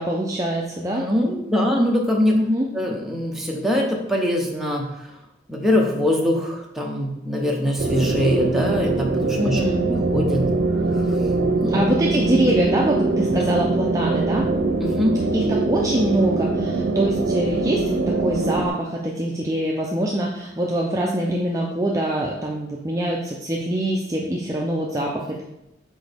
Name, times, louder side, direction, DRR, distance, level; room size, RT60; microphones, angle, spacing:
voice 1, 0.0-1.0 2.3-2.7 9.4-9.8 11.7-14.5 15.3-25.4, right 1 dB, 20° right, -3 dB, 0.5 m, -24 dB
voice 2, 0.9-2.4 2.7-4.9 5.5-9.6 9.9-10.4 11.5-11.9 13.2-13.3 14.8-15.2, left 1 dB, ahead, -2 dB, 0.8 m, -22 dB
sound 1, 7.8-18.7, right 3 dB, 90° right, 0.6 m, -23 dB
6.2 x 4.8 x 3.5 m, 0.88 s
head